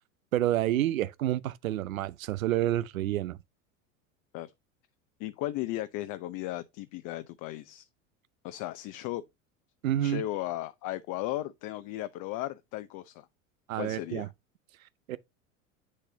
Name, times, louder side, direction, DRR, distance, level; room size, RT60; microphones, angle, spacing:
voice 1, 0.3-3.4 9.8-10.2 13.7-14.3 15.1-15.2, right 13 dB, 85° right, 0.7 m, -29 dB
voice 2, 5.2-7.9 8.4-9.2 10.0-13.3 13.8-14.3, left 15 dB, 50° left, 0.8 m, -36 dB
8.3 x 6.6 x 2.8 m
hypercardioid pair, 90°, 40 cm